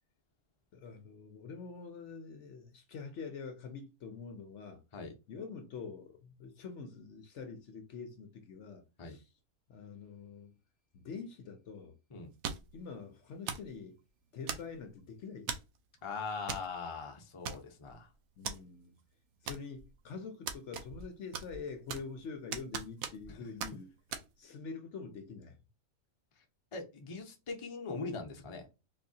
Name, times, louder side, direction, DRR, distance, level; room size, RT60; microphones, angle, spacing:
voice 1, 0.7-4.8 5.3-9.3 9.7-10.5 10.9-11.9 12.7-14.0 14.3-15.5 18.4-18.9 19.4-23.9 24.4-25.6, left 5 dB, 60° left, 0.9 m, -45 dB
sound 1, 12.4-12.8 13.5-13.7 14.5-14.9 15.5-15.8 16.5-16.7 16.9-17.0 17.4-17.9 18.4-18.6 19.5-19.9 20.5-21.1 21.3-22.2 22.5-23.3 23.6-23.7 24.1-24.2, right 7 dB, 75° right, 1.0 m, -39 dB
voice 2, 16.0-18.1 23.3-23.4 26.7-28.7, left 4 dB, 30° left, 0.6 m, -41 dB
4.1 x 2.7 x 2.7 m
omnidirectional pair, 1.5 m